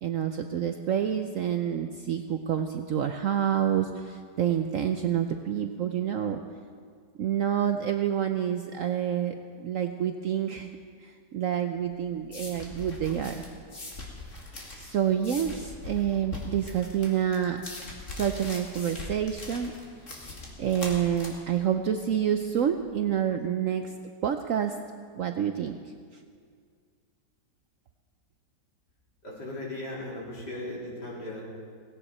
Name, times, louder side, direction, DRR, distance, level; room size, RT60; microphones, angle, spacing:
voice 1, 0.0-6.4 7.2-10.7 11.0-13.4 14.8-17.6 18.1-19.7 20.6-23.9 24.2-24.8 25.1-25.8, right 9 dB, 65° right, 6 dB, 0.8 m, -28 dB
sound 1, 11.8-23.1, left 2 dB, 45° left, 2.5 m, -41 dB
voice 2, 29.2-31.4, left 1 dB, 65° left, -4 dB, 3.9 m, -37 dB
17.5 x 16.0 x 4.3 m, 2.1 s
omnidirectional pair, 1.9 m